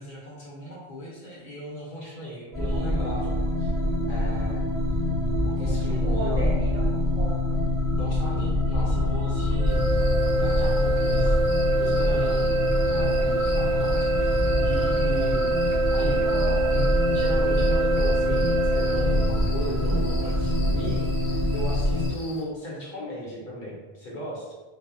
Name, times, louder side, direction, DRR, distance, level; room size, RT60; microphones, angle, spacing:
voice 1, 0.0-3.7 4.1-4.7 5.4-6.4 7.9-9.8 10.4-11.4 11.8-16.2 16.7-24.5, equal, 55° left, -5 dB, 0.7 m, -36 dB
sound 1, 2.5-22.1, left 1 dB, 20° left, 0.7 m, -25 dB
voice 2, 5.6-7.4 16.1-16.6, right 2 dB, 45° right, -7 dB, 0.6 m, -35 dB
sound 2, 9.6-19.2, right 4 dB, 15° right, 0.9 m, -25 dB
sound 3, 9.7-22.4, left 2 dB, 85° left, 0.9 m, -45 dB
2.0 x 2.0 x 3.5 m, 1.3 s
omnidirectional pair, 1.1 m